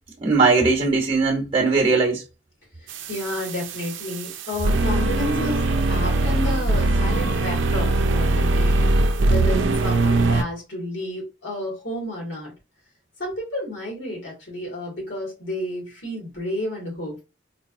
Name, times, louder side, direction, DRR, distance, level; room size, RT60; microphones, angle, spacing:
voice 1, 0.2-2.2, right 4 dB, 30° right, 0.8 m, -19 dB
voice 2, 2.8-8.9 9.3-12.5 13.2-17.2, left 1 dB, 80° left, 2.4 m, -31 dB
sound 1, 2.9-10.4, right 2 dB, 70° right, 0.5 m, -21 dB
4.2 x 2.8 x 2.6 m
head